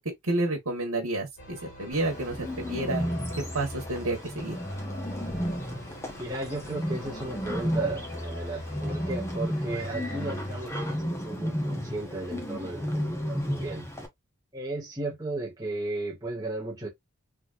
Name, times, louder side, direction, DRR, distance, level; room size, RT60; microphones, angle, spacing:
voice 1, 0.2-3.0 3.5-4.6, right 2 dB, 80° right, 1.4 m, -30 dB
sound 1, 1.4-11.0, left 1 dB, 60° left, 1.9 m, -40 dB
Bird, 1.9-14.1, equal, 10° left, 0.9 m, -33 dB
voice 2, 6.2-13.9 14.5-16.9, right 2 dB, 15° right, 1.5 m, -35 dB
4.0 x 3.4 x 2.4 m
head